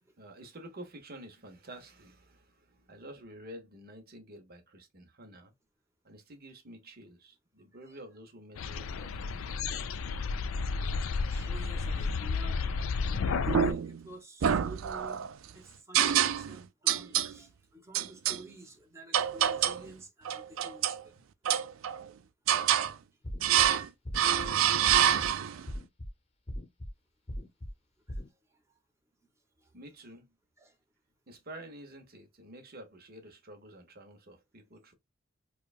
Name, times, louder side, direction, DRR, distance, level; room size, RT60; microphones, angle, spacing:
voice 1, 0.2-5.5 6.0-10.0 29.7-30.3 31.3-34.9, right 1 dB, 50° right, 1.0 m, -49 dB
sound 1, 8.6-13.7, left 4 dB, 90° left, 0.4 m, -32 dB
voice 2, 11.2-12.6 13.0-21.2 22.6-22.7 24.4-24.7 28.1-28.2 28.5-28.6 29.6-29.7 30.6-30.8, right 1 dB, 15° right, 1.1 m, -51 dB
sound 2, 13.5-14.0 14.4-15.3 15.9-16.6 16.9-17.3 17.9-18.4 19.1-19.9 20.2-21.0 21.4-22.1 22.5-22.9 23.4-23.9 24.1-25.6, right 10 dB, 80° right, 0.4 m, -27 dB
sound 3, 23.2-23.7 24.0-24.5 24.9-25.3 25.7-26.1 26.5-26.9 27.3-27.7 28.1-28.3, equal, 30° left, 0.9 m, -38 dB
4.8 x 2.3 x 2.4 m
head